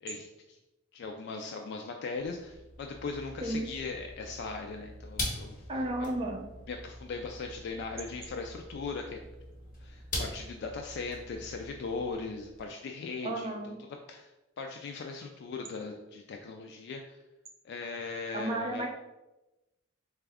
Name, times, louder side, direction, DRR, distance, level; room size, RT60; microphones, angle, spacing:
voice 1, 0.0-0.6 0.9-5.6 6.7-9.2 9.8-14.3 14.6-17.2 17.6-18.9, left 4 dB, 60° left, 3 dB, 0.3 m, -39 dB
sound 1, 2.2-12.6, left 1 dB, 45° left, 1.2 m, -43 dB
voice 2, 5.7-6.4 13.2-13.7 18.3-18.9, right 1 dB, 30° right, -1 dB, 0.6 m, -33 dB
4.0 x 2.4 x 3.4 m, 1.0 s
head